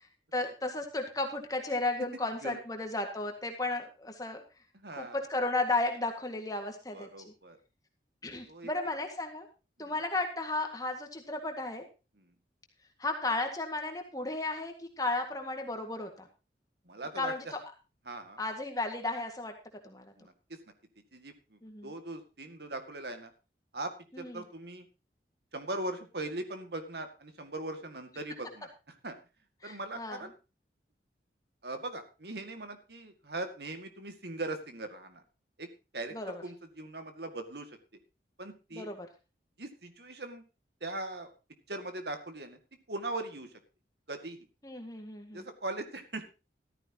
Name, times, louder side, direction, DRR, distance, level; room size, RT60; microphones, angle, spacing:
voice 1, 0.3-4.4 5.0-7.1 8.2-9.5 9.8-11.9 13.0-16.1 17.2-17.6 18.4-19.5 19.8-20.1 21.6-21.9 24.1-24.4 29.6-30.2 36.1-36.4 38.7-39.1 44.6-45.4, left 2 dB, 20° left, 4 dB, 1.9 m, -34 dB
voice 2, 4.7-5.2 6.9-7.6 8.5-8.7 9.8-9.9 12.2-12.3 16.9-17.5 18.1-18.4 20.2-20.6 21.1-23.3 23.7-24.9 25.5-29.1 29.6-30.3 31.6-35.2 35.6-37.8 38.4-38.9 39.6-40.4 40.8-41.3 41.7-42.6 42.9-43.5 44.1-44.5 45.3-46.2, right 2 dB, 65° right, 7 dB, 2.1 m, -40 dB
14.0 x 14.0 x 3.0 m, 0.30 s
head